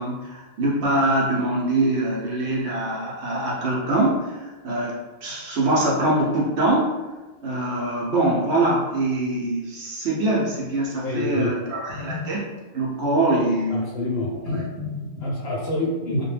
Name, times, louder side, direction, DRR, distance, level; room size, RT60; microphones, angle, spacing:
voice 1, 0.0-6.9 7.4-12.5 12.7-13.8 14.5-15.1, right 1 dB, 65° right, -4 dB, 0.8 m, -23 dB
voice 2, 11.0-11.5 13.7-14.7 15.2-16.2, left 1 dB, 65° left, -4 dB, 0.7 m, -26 dB
2.2 x 2.1 x 3.1 m, 1.2 s
omnidirectional pair, 1.4 m